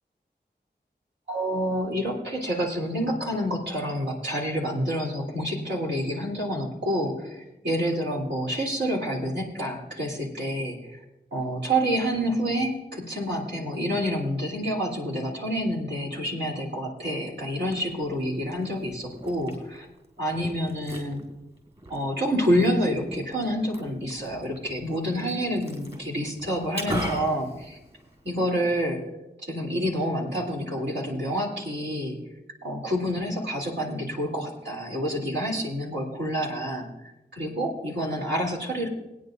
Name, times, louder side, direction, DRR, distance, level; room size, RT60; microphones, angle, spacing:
voice 1, 1.3-11.0 11.3-19.9 20.2-21.2 21.9-27.8 28.2-29.0 29.4-32.2 32.6-36.9 37.3-38.9, equal, 75° right, -2 dB, 3.5 m, -28 dB
Liquid, 17.4-28.4, right 1 dB, 30° right, 4.1 m, -40 dB
21.5 x 9.6 x 2.7 m, 0.98 s
cardioid pair, 45°, 19 cm